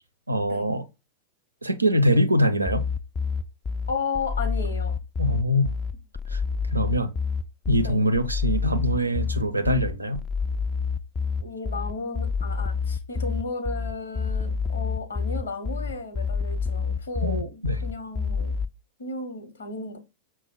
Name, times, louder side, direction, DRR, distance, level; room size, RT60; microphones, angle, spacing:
voice 1, 0.3-0.8 1.6-2.8 5.2-5.7 6.3-6.4 6.7-7.1 7.7-10.2 17.2-17.8, equal, 85° right, 0.5 m, -23 dB
sound 1, 2.7-18.7, left 5 dB, 20° left, 0.3 m, -28 dB
voice 2, 3.9-4.9 7.8-8.0 11.4-18.5 19.0-20.0, left 3 dB, 70° left, 0.9 m, -34 dB
6.0 x 2.0 x 4.3 m
figure-of-eight pair, 90°, 0 cm